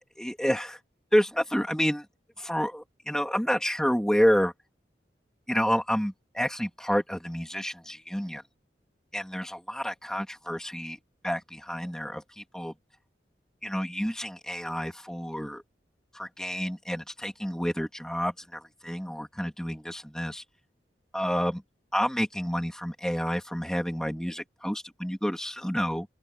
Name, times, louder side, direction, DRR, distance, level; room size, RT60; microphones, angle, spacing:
voice 1, 0.2-0.8 1.1-2.0 2.4-4.5 5.5-8.4 9.1-11.0 11.2-12.7 13.6-15.6 16.1-20.4 21.1-21.6 21.9-26.1, equal, 5° left, 3.3 m, -29 dB
open air
head